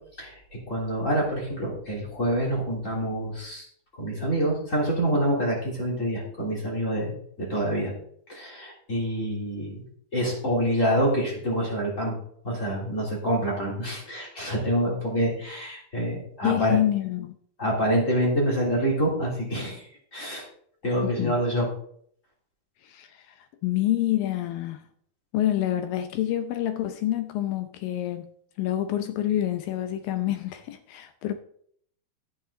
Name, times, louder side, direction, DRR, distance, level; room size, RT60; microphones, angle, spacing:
voice 1, 0.2-3.6 3.9-7.9 8.3-9.8 10.1-12.2 12.4-16.8 17.6-19.8 20.1-20.5 20.8-21.6, equal, 20° left, 3.1 m, -26 dB
voice 2, 16.4-17.3 21.0-21.4 22.8-23.4 23.6-24.8 25.3-28.2 28.6-31.3, left 13 dB, 75° left, 2.3 m, -27 dB
11.5 x 9.0 x 3.8 m
omnidirectional pair, 4.5 m